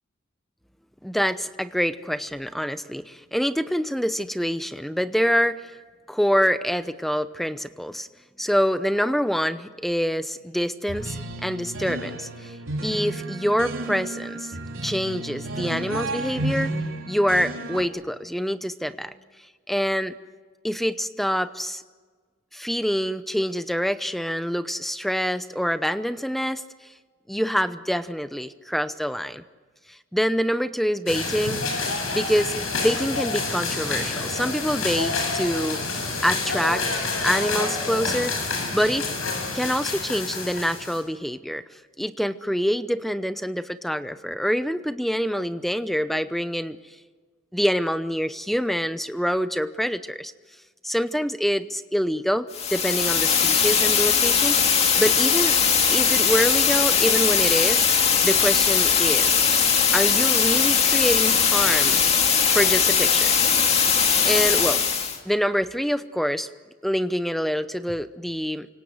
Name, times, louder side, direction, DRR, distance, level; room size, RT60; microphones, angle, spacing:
voice 1, 1.0-5.7 6.1-8.1 8.4-12.6 12.8-14.5 14.8-16.7 17.1-19.1 19.7-20.1 20.6-21.8 22.5-26.6 27.3-29.4 29.9-31.6 32.1-35.8 36.2-36.8 37.2-39.1 39.5-41.6 42.0-46.8 47.5-50.3 50.8-55.6 55.9-57.9 58.2-59.4 59.9-62.0 62.5-63.3 64.2-64.8 65.2-66.5 66.8-68.7, equal, ahead, 12 dB, 0.8 m, -25 dB
sound 1, 10.9-17.8, right 2 dB, 70° right, 3.9 m, -32 dB
sound 2, 31.1-41.0, left 3 dB, 85° left, 7.8 m, -28 dB
sound 3, 52.5-65.2, left 6 dB, 30° left, 2.3 m, -20 dB
29.0 x 25.5 x 7.9 m, 1.4 s
head